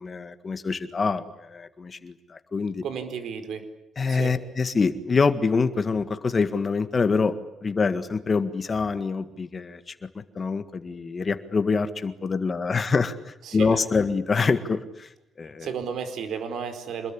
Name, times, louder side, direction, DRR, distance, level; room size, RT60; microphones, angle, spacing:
voice 1, 0.0-2.8 4.0-7.3 7.6-9.8 10.4-13.2 13.5-15.1 15.4-15.7, left 4 dB, 25° left, 10 dB, 1.8 m, -25 dB
voice 2, 2.8-3.6 4.1-4.3 13.5-13.8 15.6-17.1, right 6 dB, 65° right, 9 dB, 4.6 m, -33 dB
26.5 x 21.5 x 10.0 m, 0.85 s
cardioid pair, 160°, 0 cm